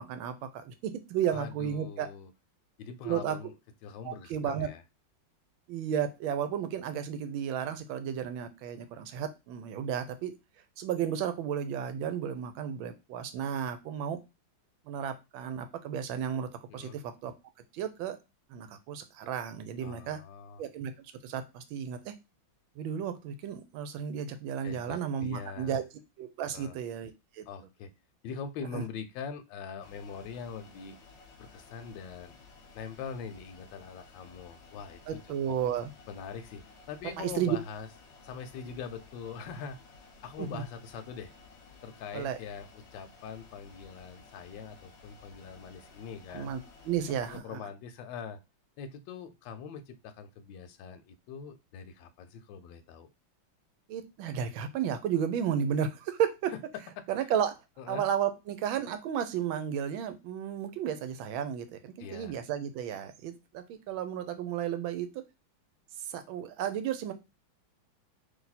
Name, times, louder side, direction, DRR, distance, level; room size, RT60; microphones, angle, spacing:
voice 1, 0.0-2.1 3.0-3.4 4.0-4.7 5.7-10.4 10.8-14.2 14.9-17.3 17.7-18.2 18.5-20.2 20.6-20.9 21.2-22.1 22.8-25.8 26.2-27.4 28.7-28.8 35.1-35.9 37.2-37.6 40.4-40.6 42.1-42.4 46.3-47.6 53.9-56.5 57.1-57.5 57.9-65.1 66.1-67.1, right 9 dB, 90° right, 10 dB, 1.4 m, -33 dB
voice 2, 1.3-2.3 2.8-3.5 3.8-4.8 16.7-17.0 19.8-20.6 24.6-25.8 26.5-26.8 27.5-27.9 28.2-31.0 31.4-32.4 32.7-35.0 35.5-35.6 36.1-37.9 38.2-41.3 41.8-46.5 47.3-48.4 48.8-53.1 57.0-57.3 57.8-58.1 62.0-62.4, left 6 dB, 75° left, 7 dB, 1.2 m, -43 dB
sound 1, 29.8-47.4, left 4 dB, 50° left, 0.9 m, -55 dB
3.4 x 2.7 x 4.0 m, 0.25 s
omnidirectional pair, 2.1 m